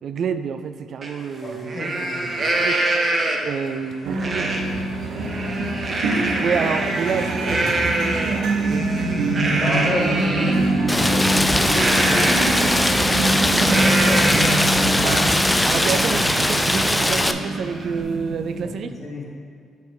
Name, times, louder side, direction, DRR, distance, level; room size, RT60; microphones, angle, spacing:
voice 1, 0.0-2.2 2.6-2.8 3.4-4.5 6.4-9.6 15.6-19.0, right 6 dB, 60° right, 10 dB, 0.3 m, -29 dB
Livestock farm animals working animals, 1.0-1.1 1.5-3.6 4.2-4.6 5.0-10.6 11.7-14.8 15.2-15.3 15.6-18.0, right 2 dB, 40° right, 1.0 m, -25 dB
voice 2, 1.4-2.5 9.6-13.1 13.6-15.0 18.6-19.2, left 1 dB, 40° left, -2 dB, 1.9 m, -31 dB
sound 1, 4.0-18.7, right 2 dB, 85° right, 1.0 m, -25 dB
Rain, 10.9-17.3, left 1 dB, 10° left, 0.4 m, -20 dB
6.8 x 5.4 x 4.7 m, 2.2 s
cardioid pair, 90°, 0 cm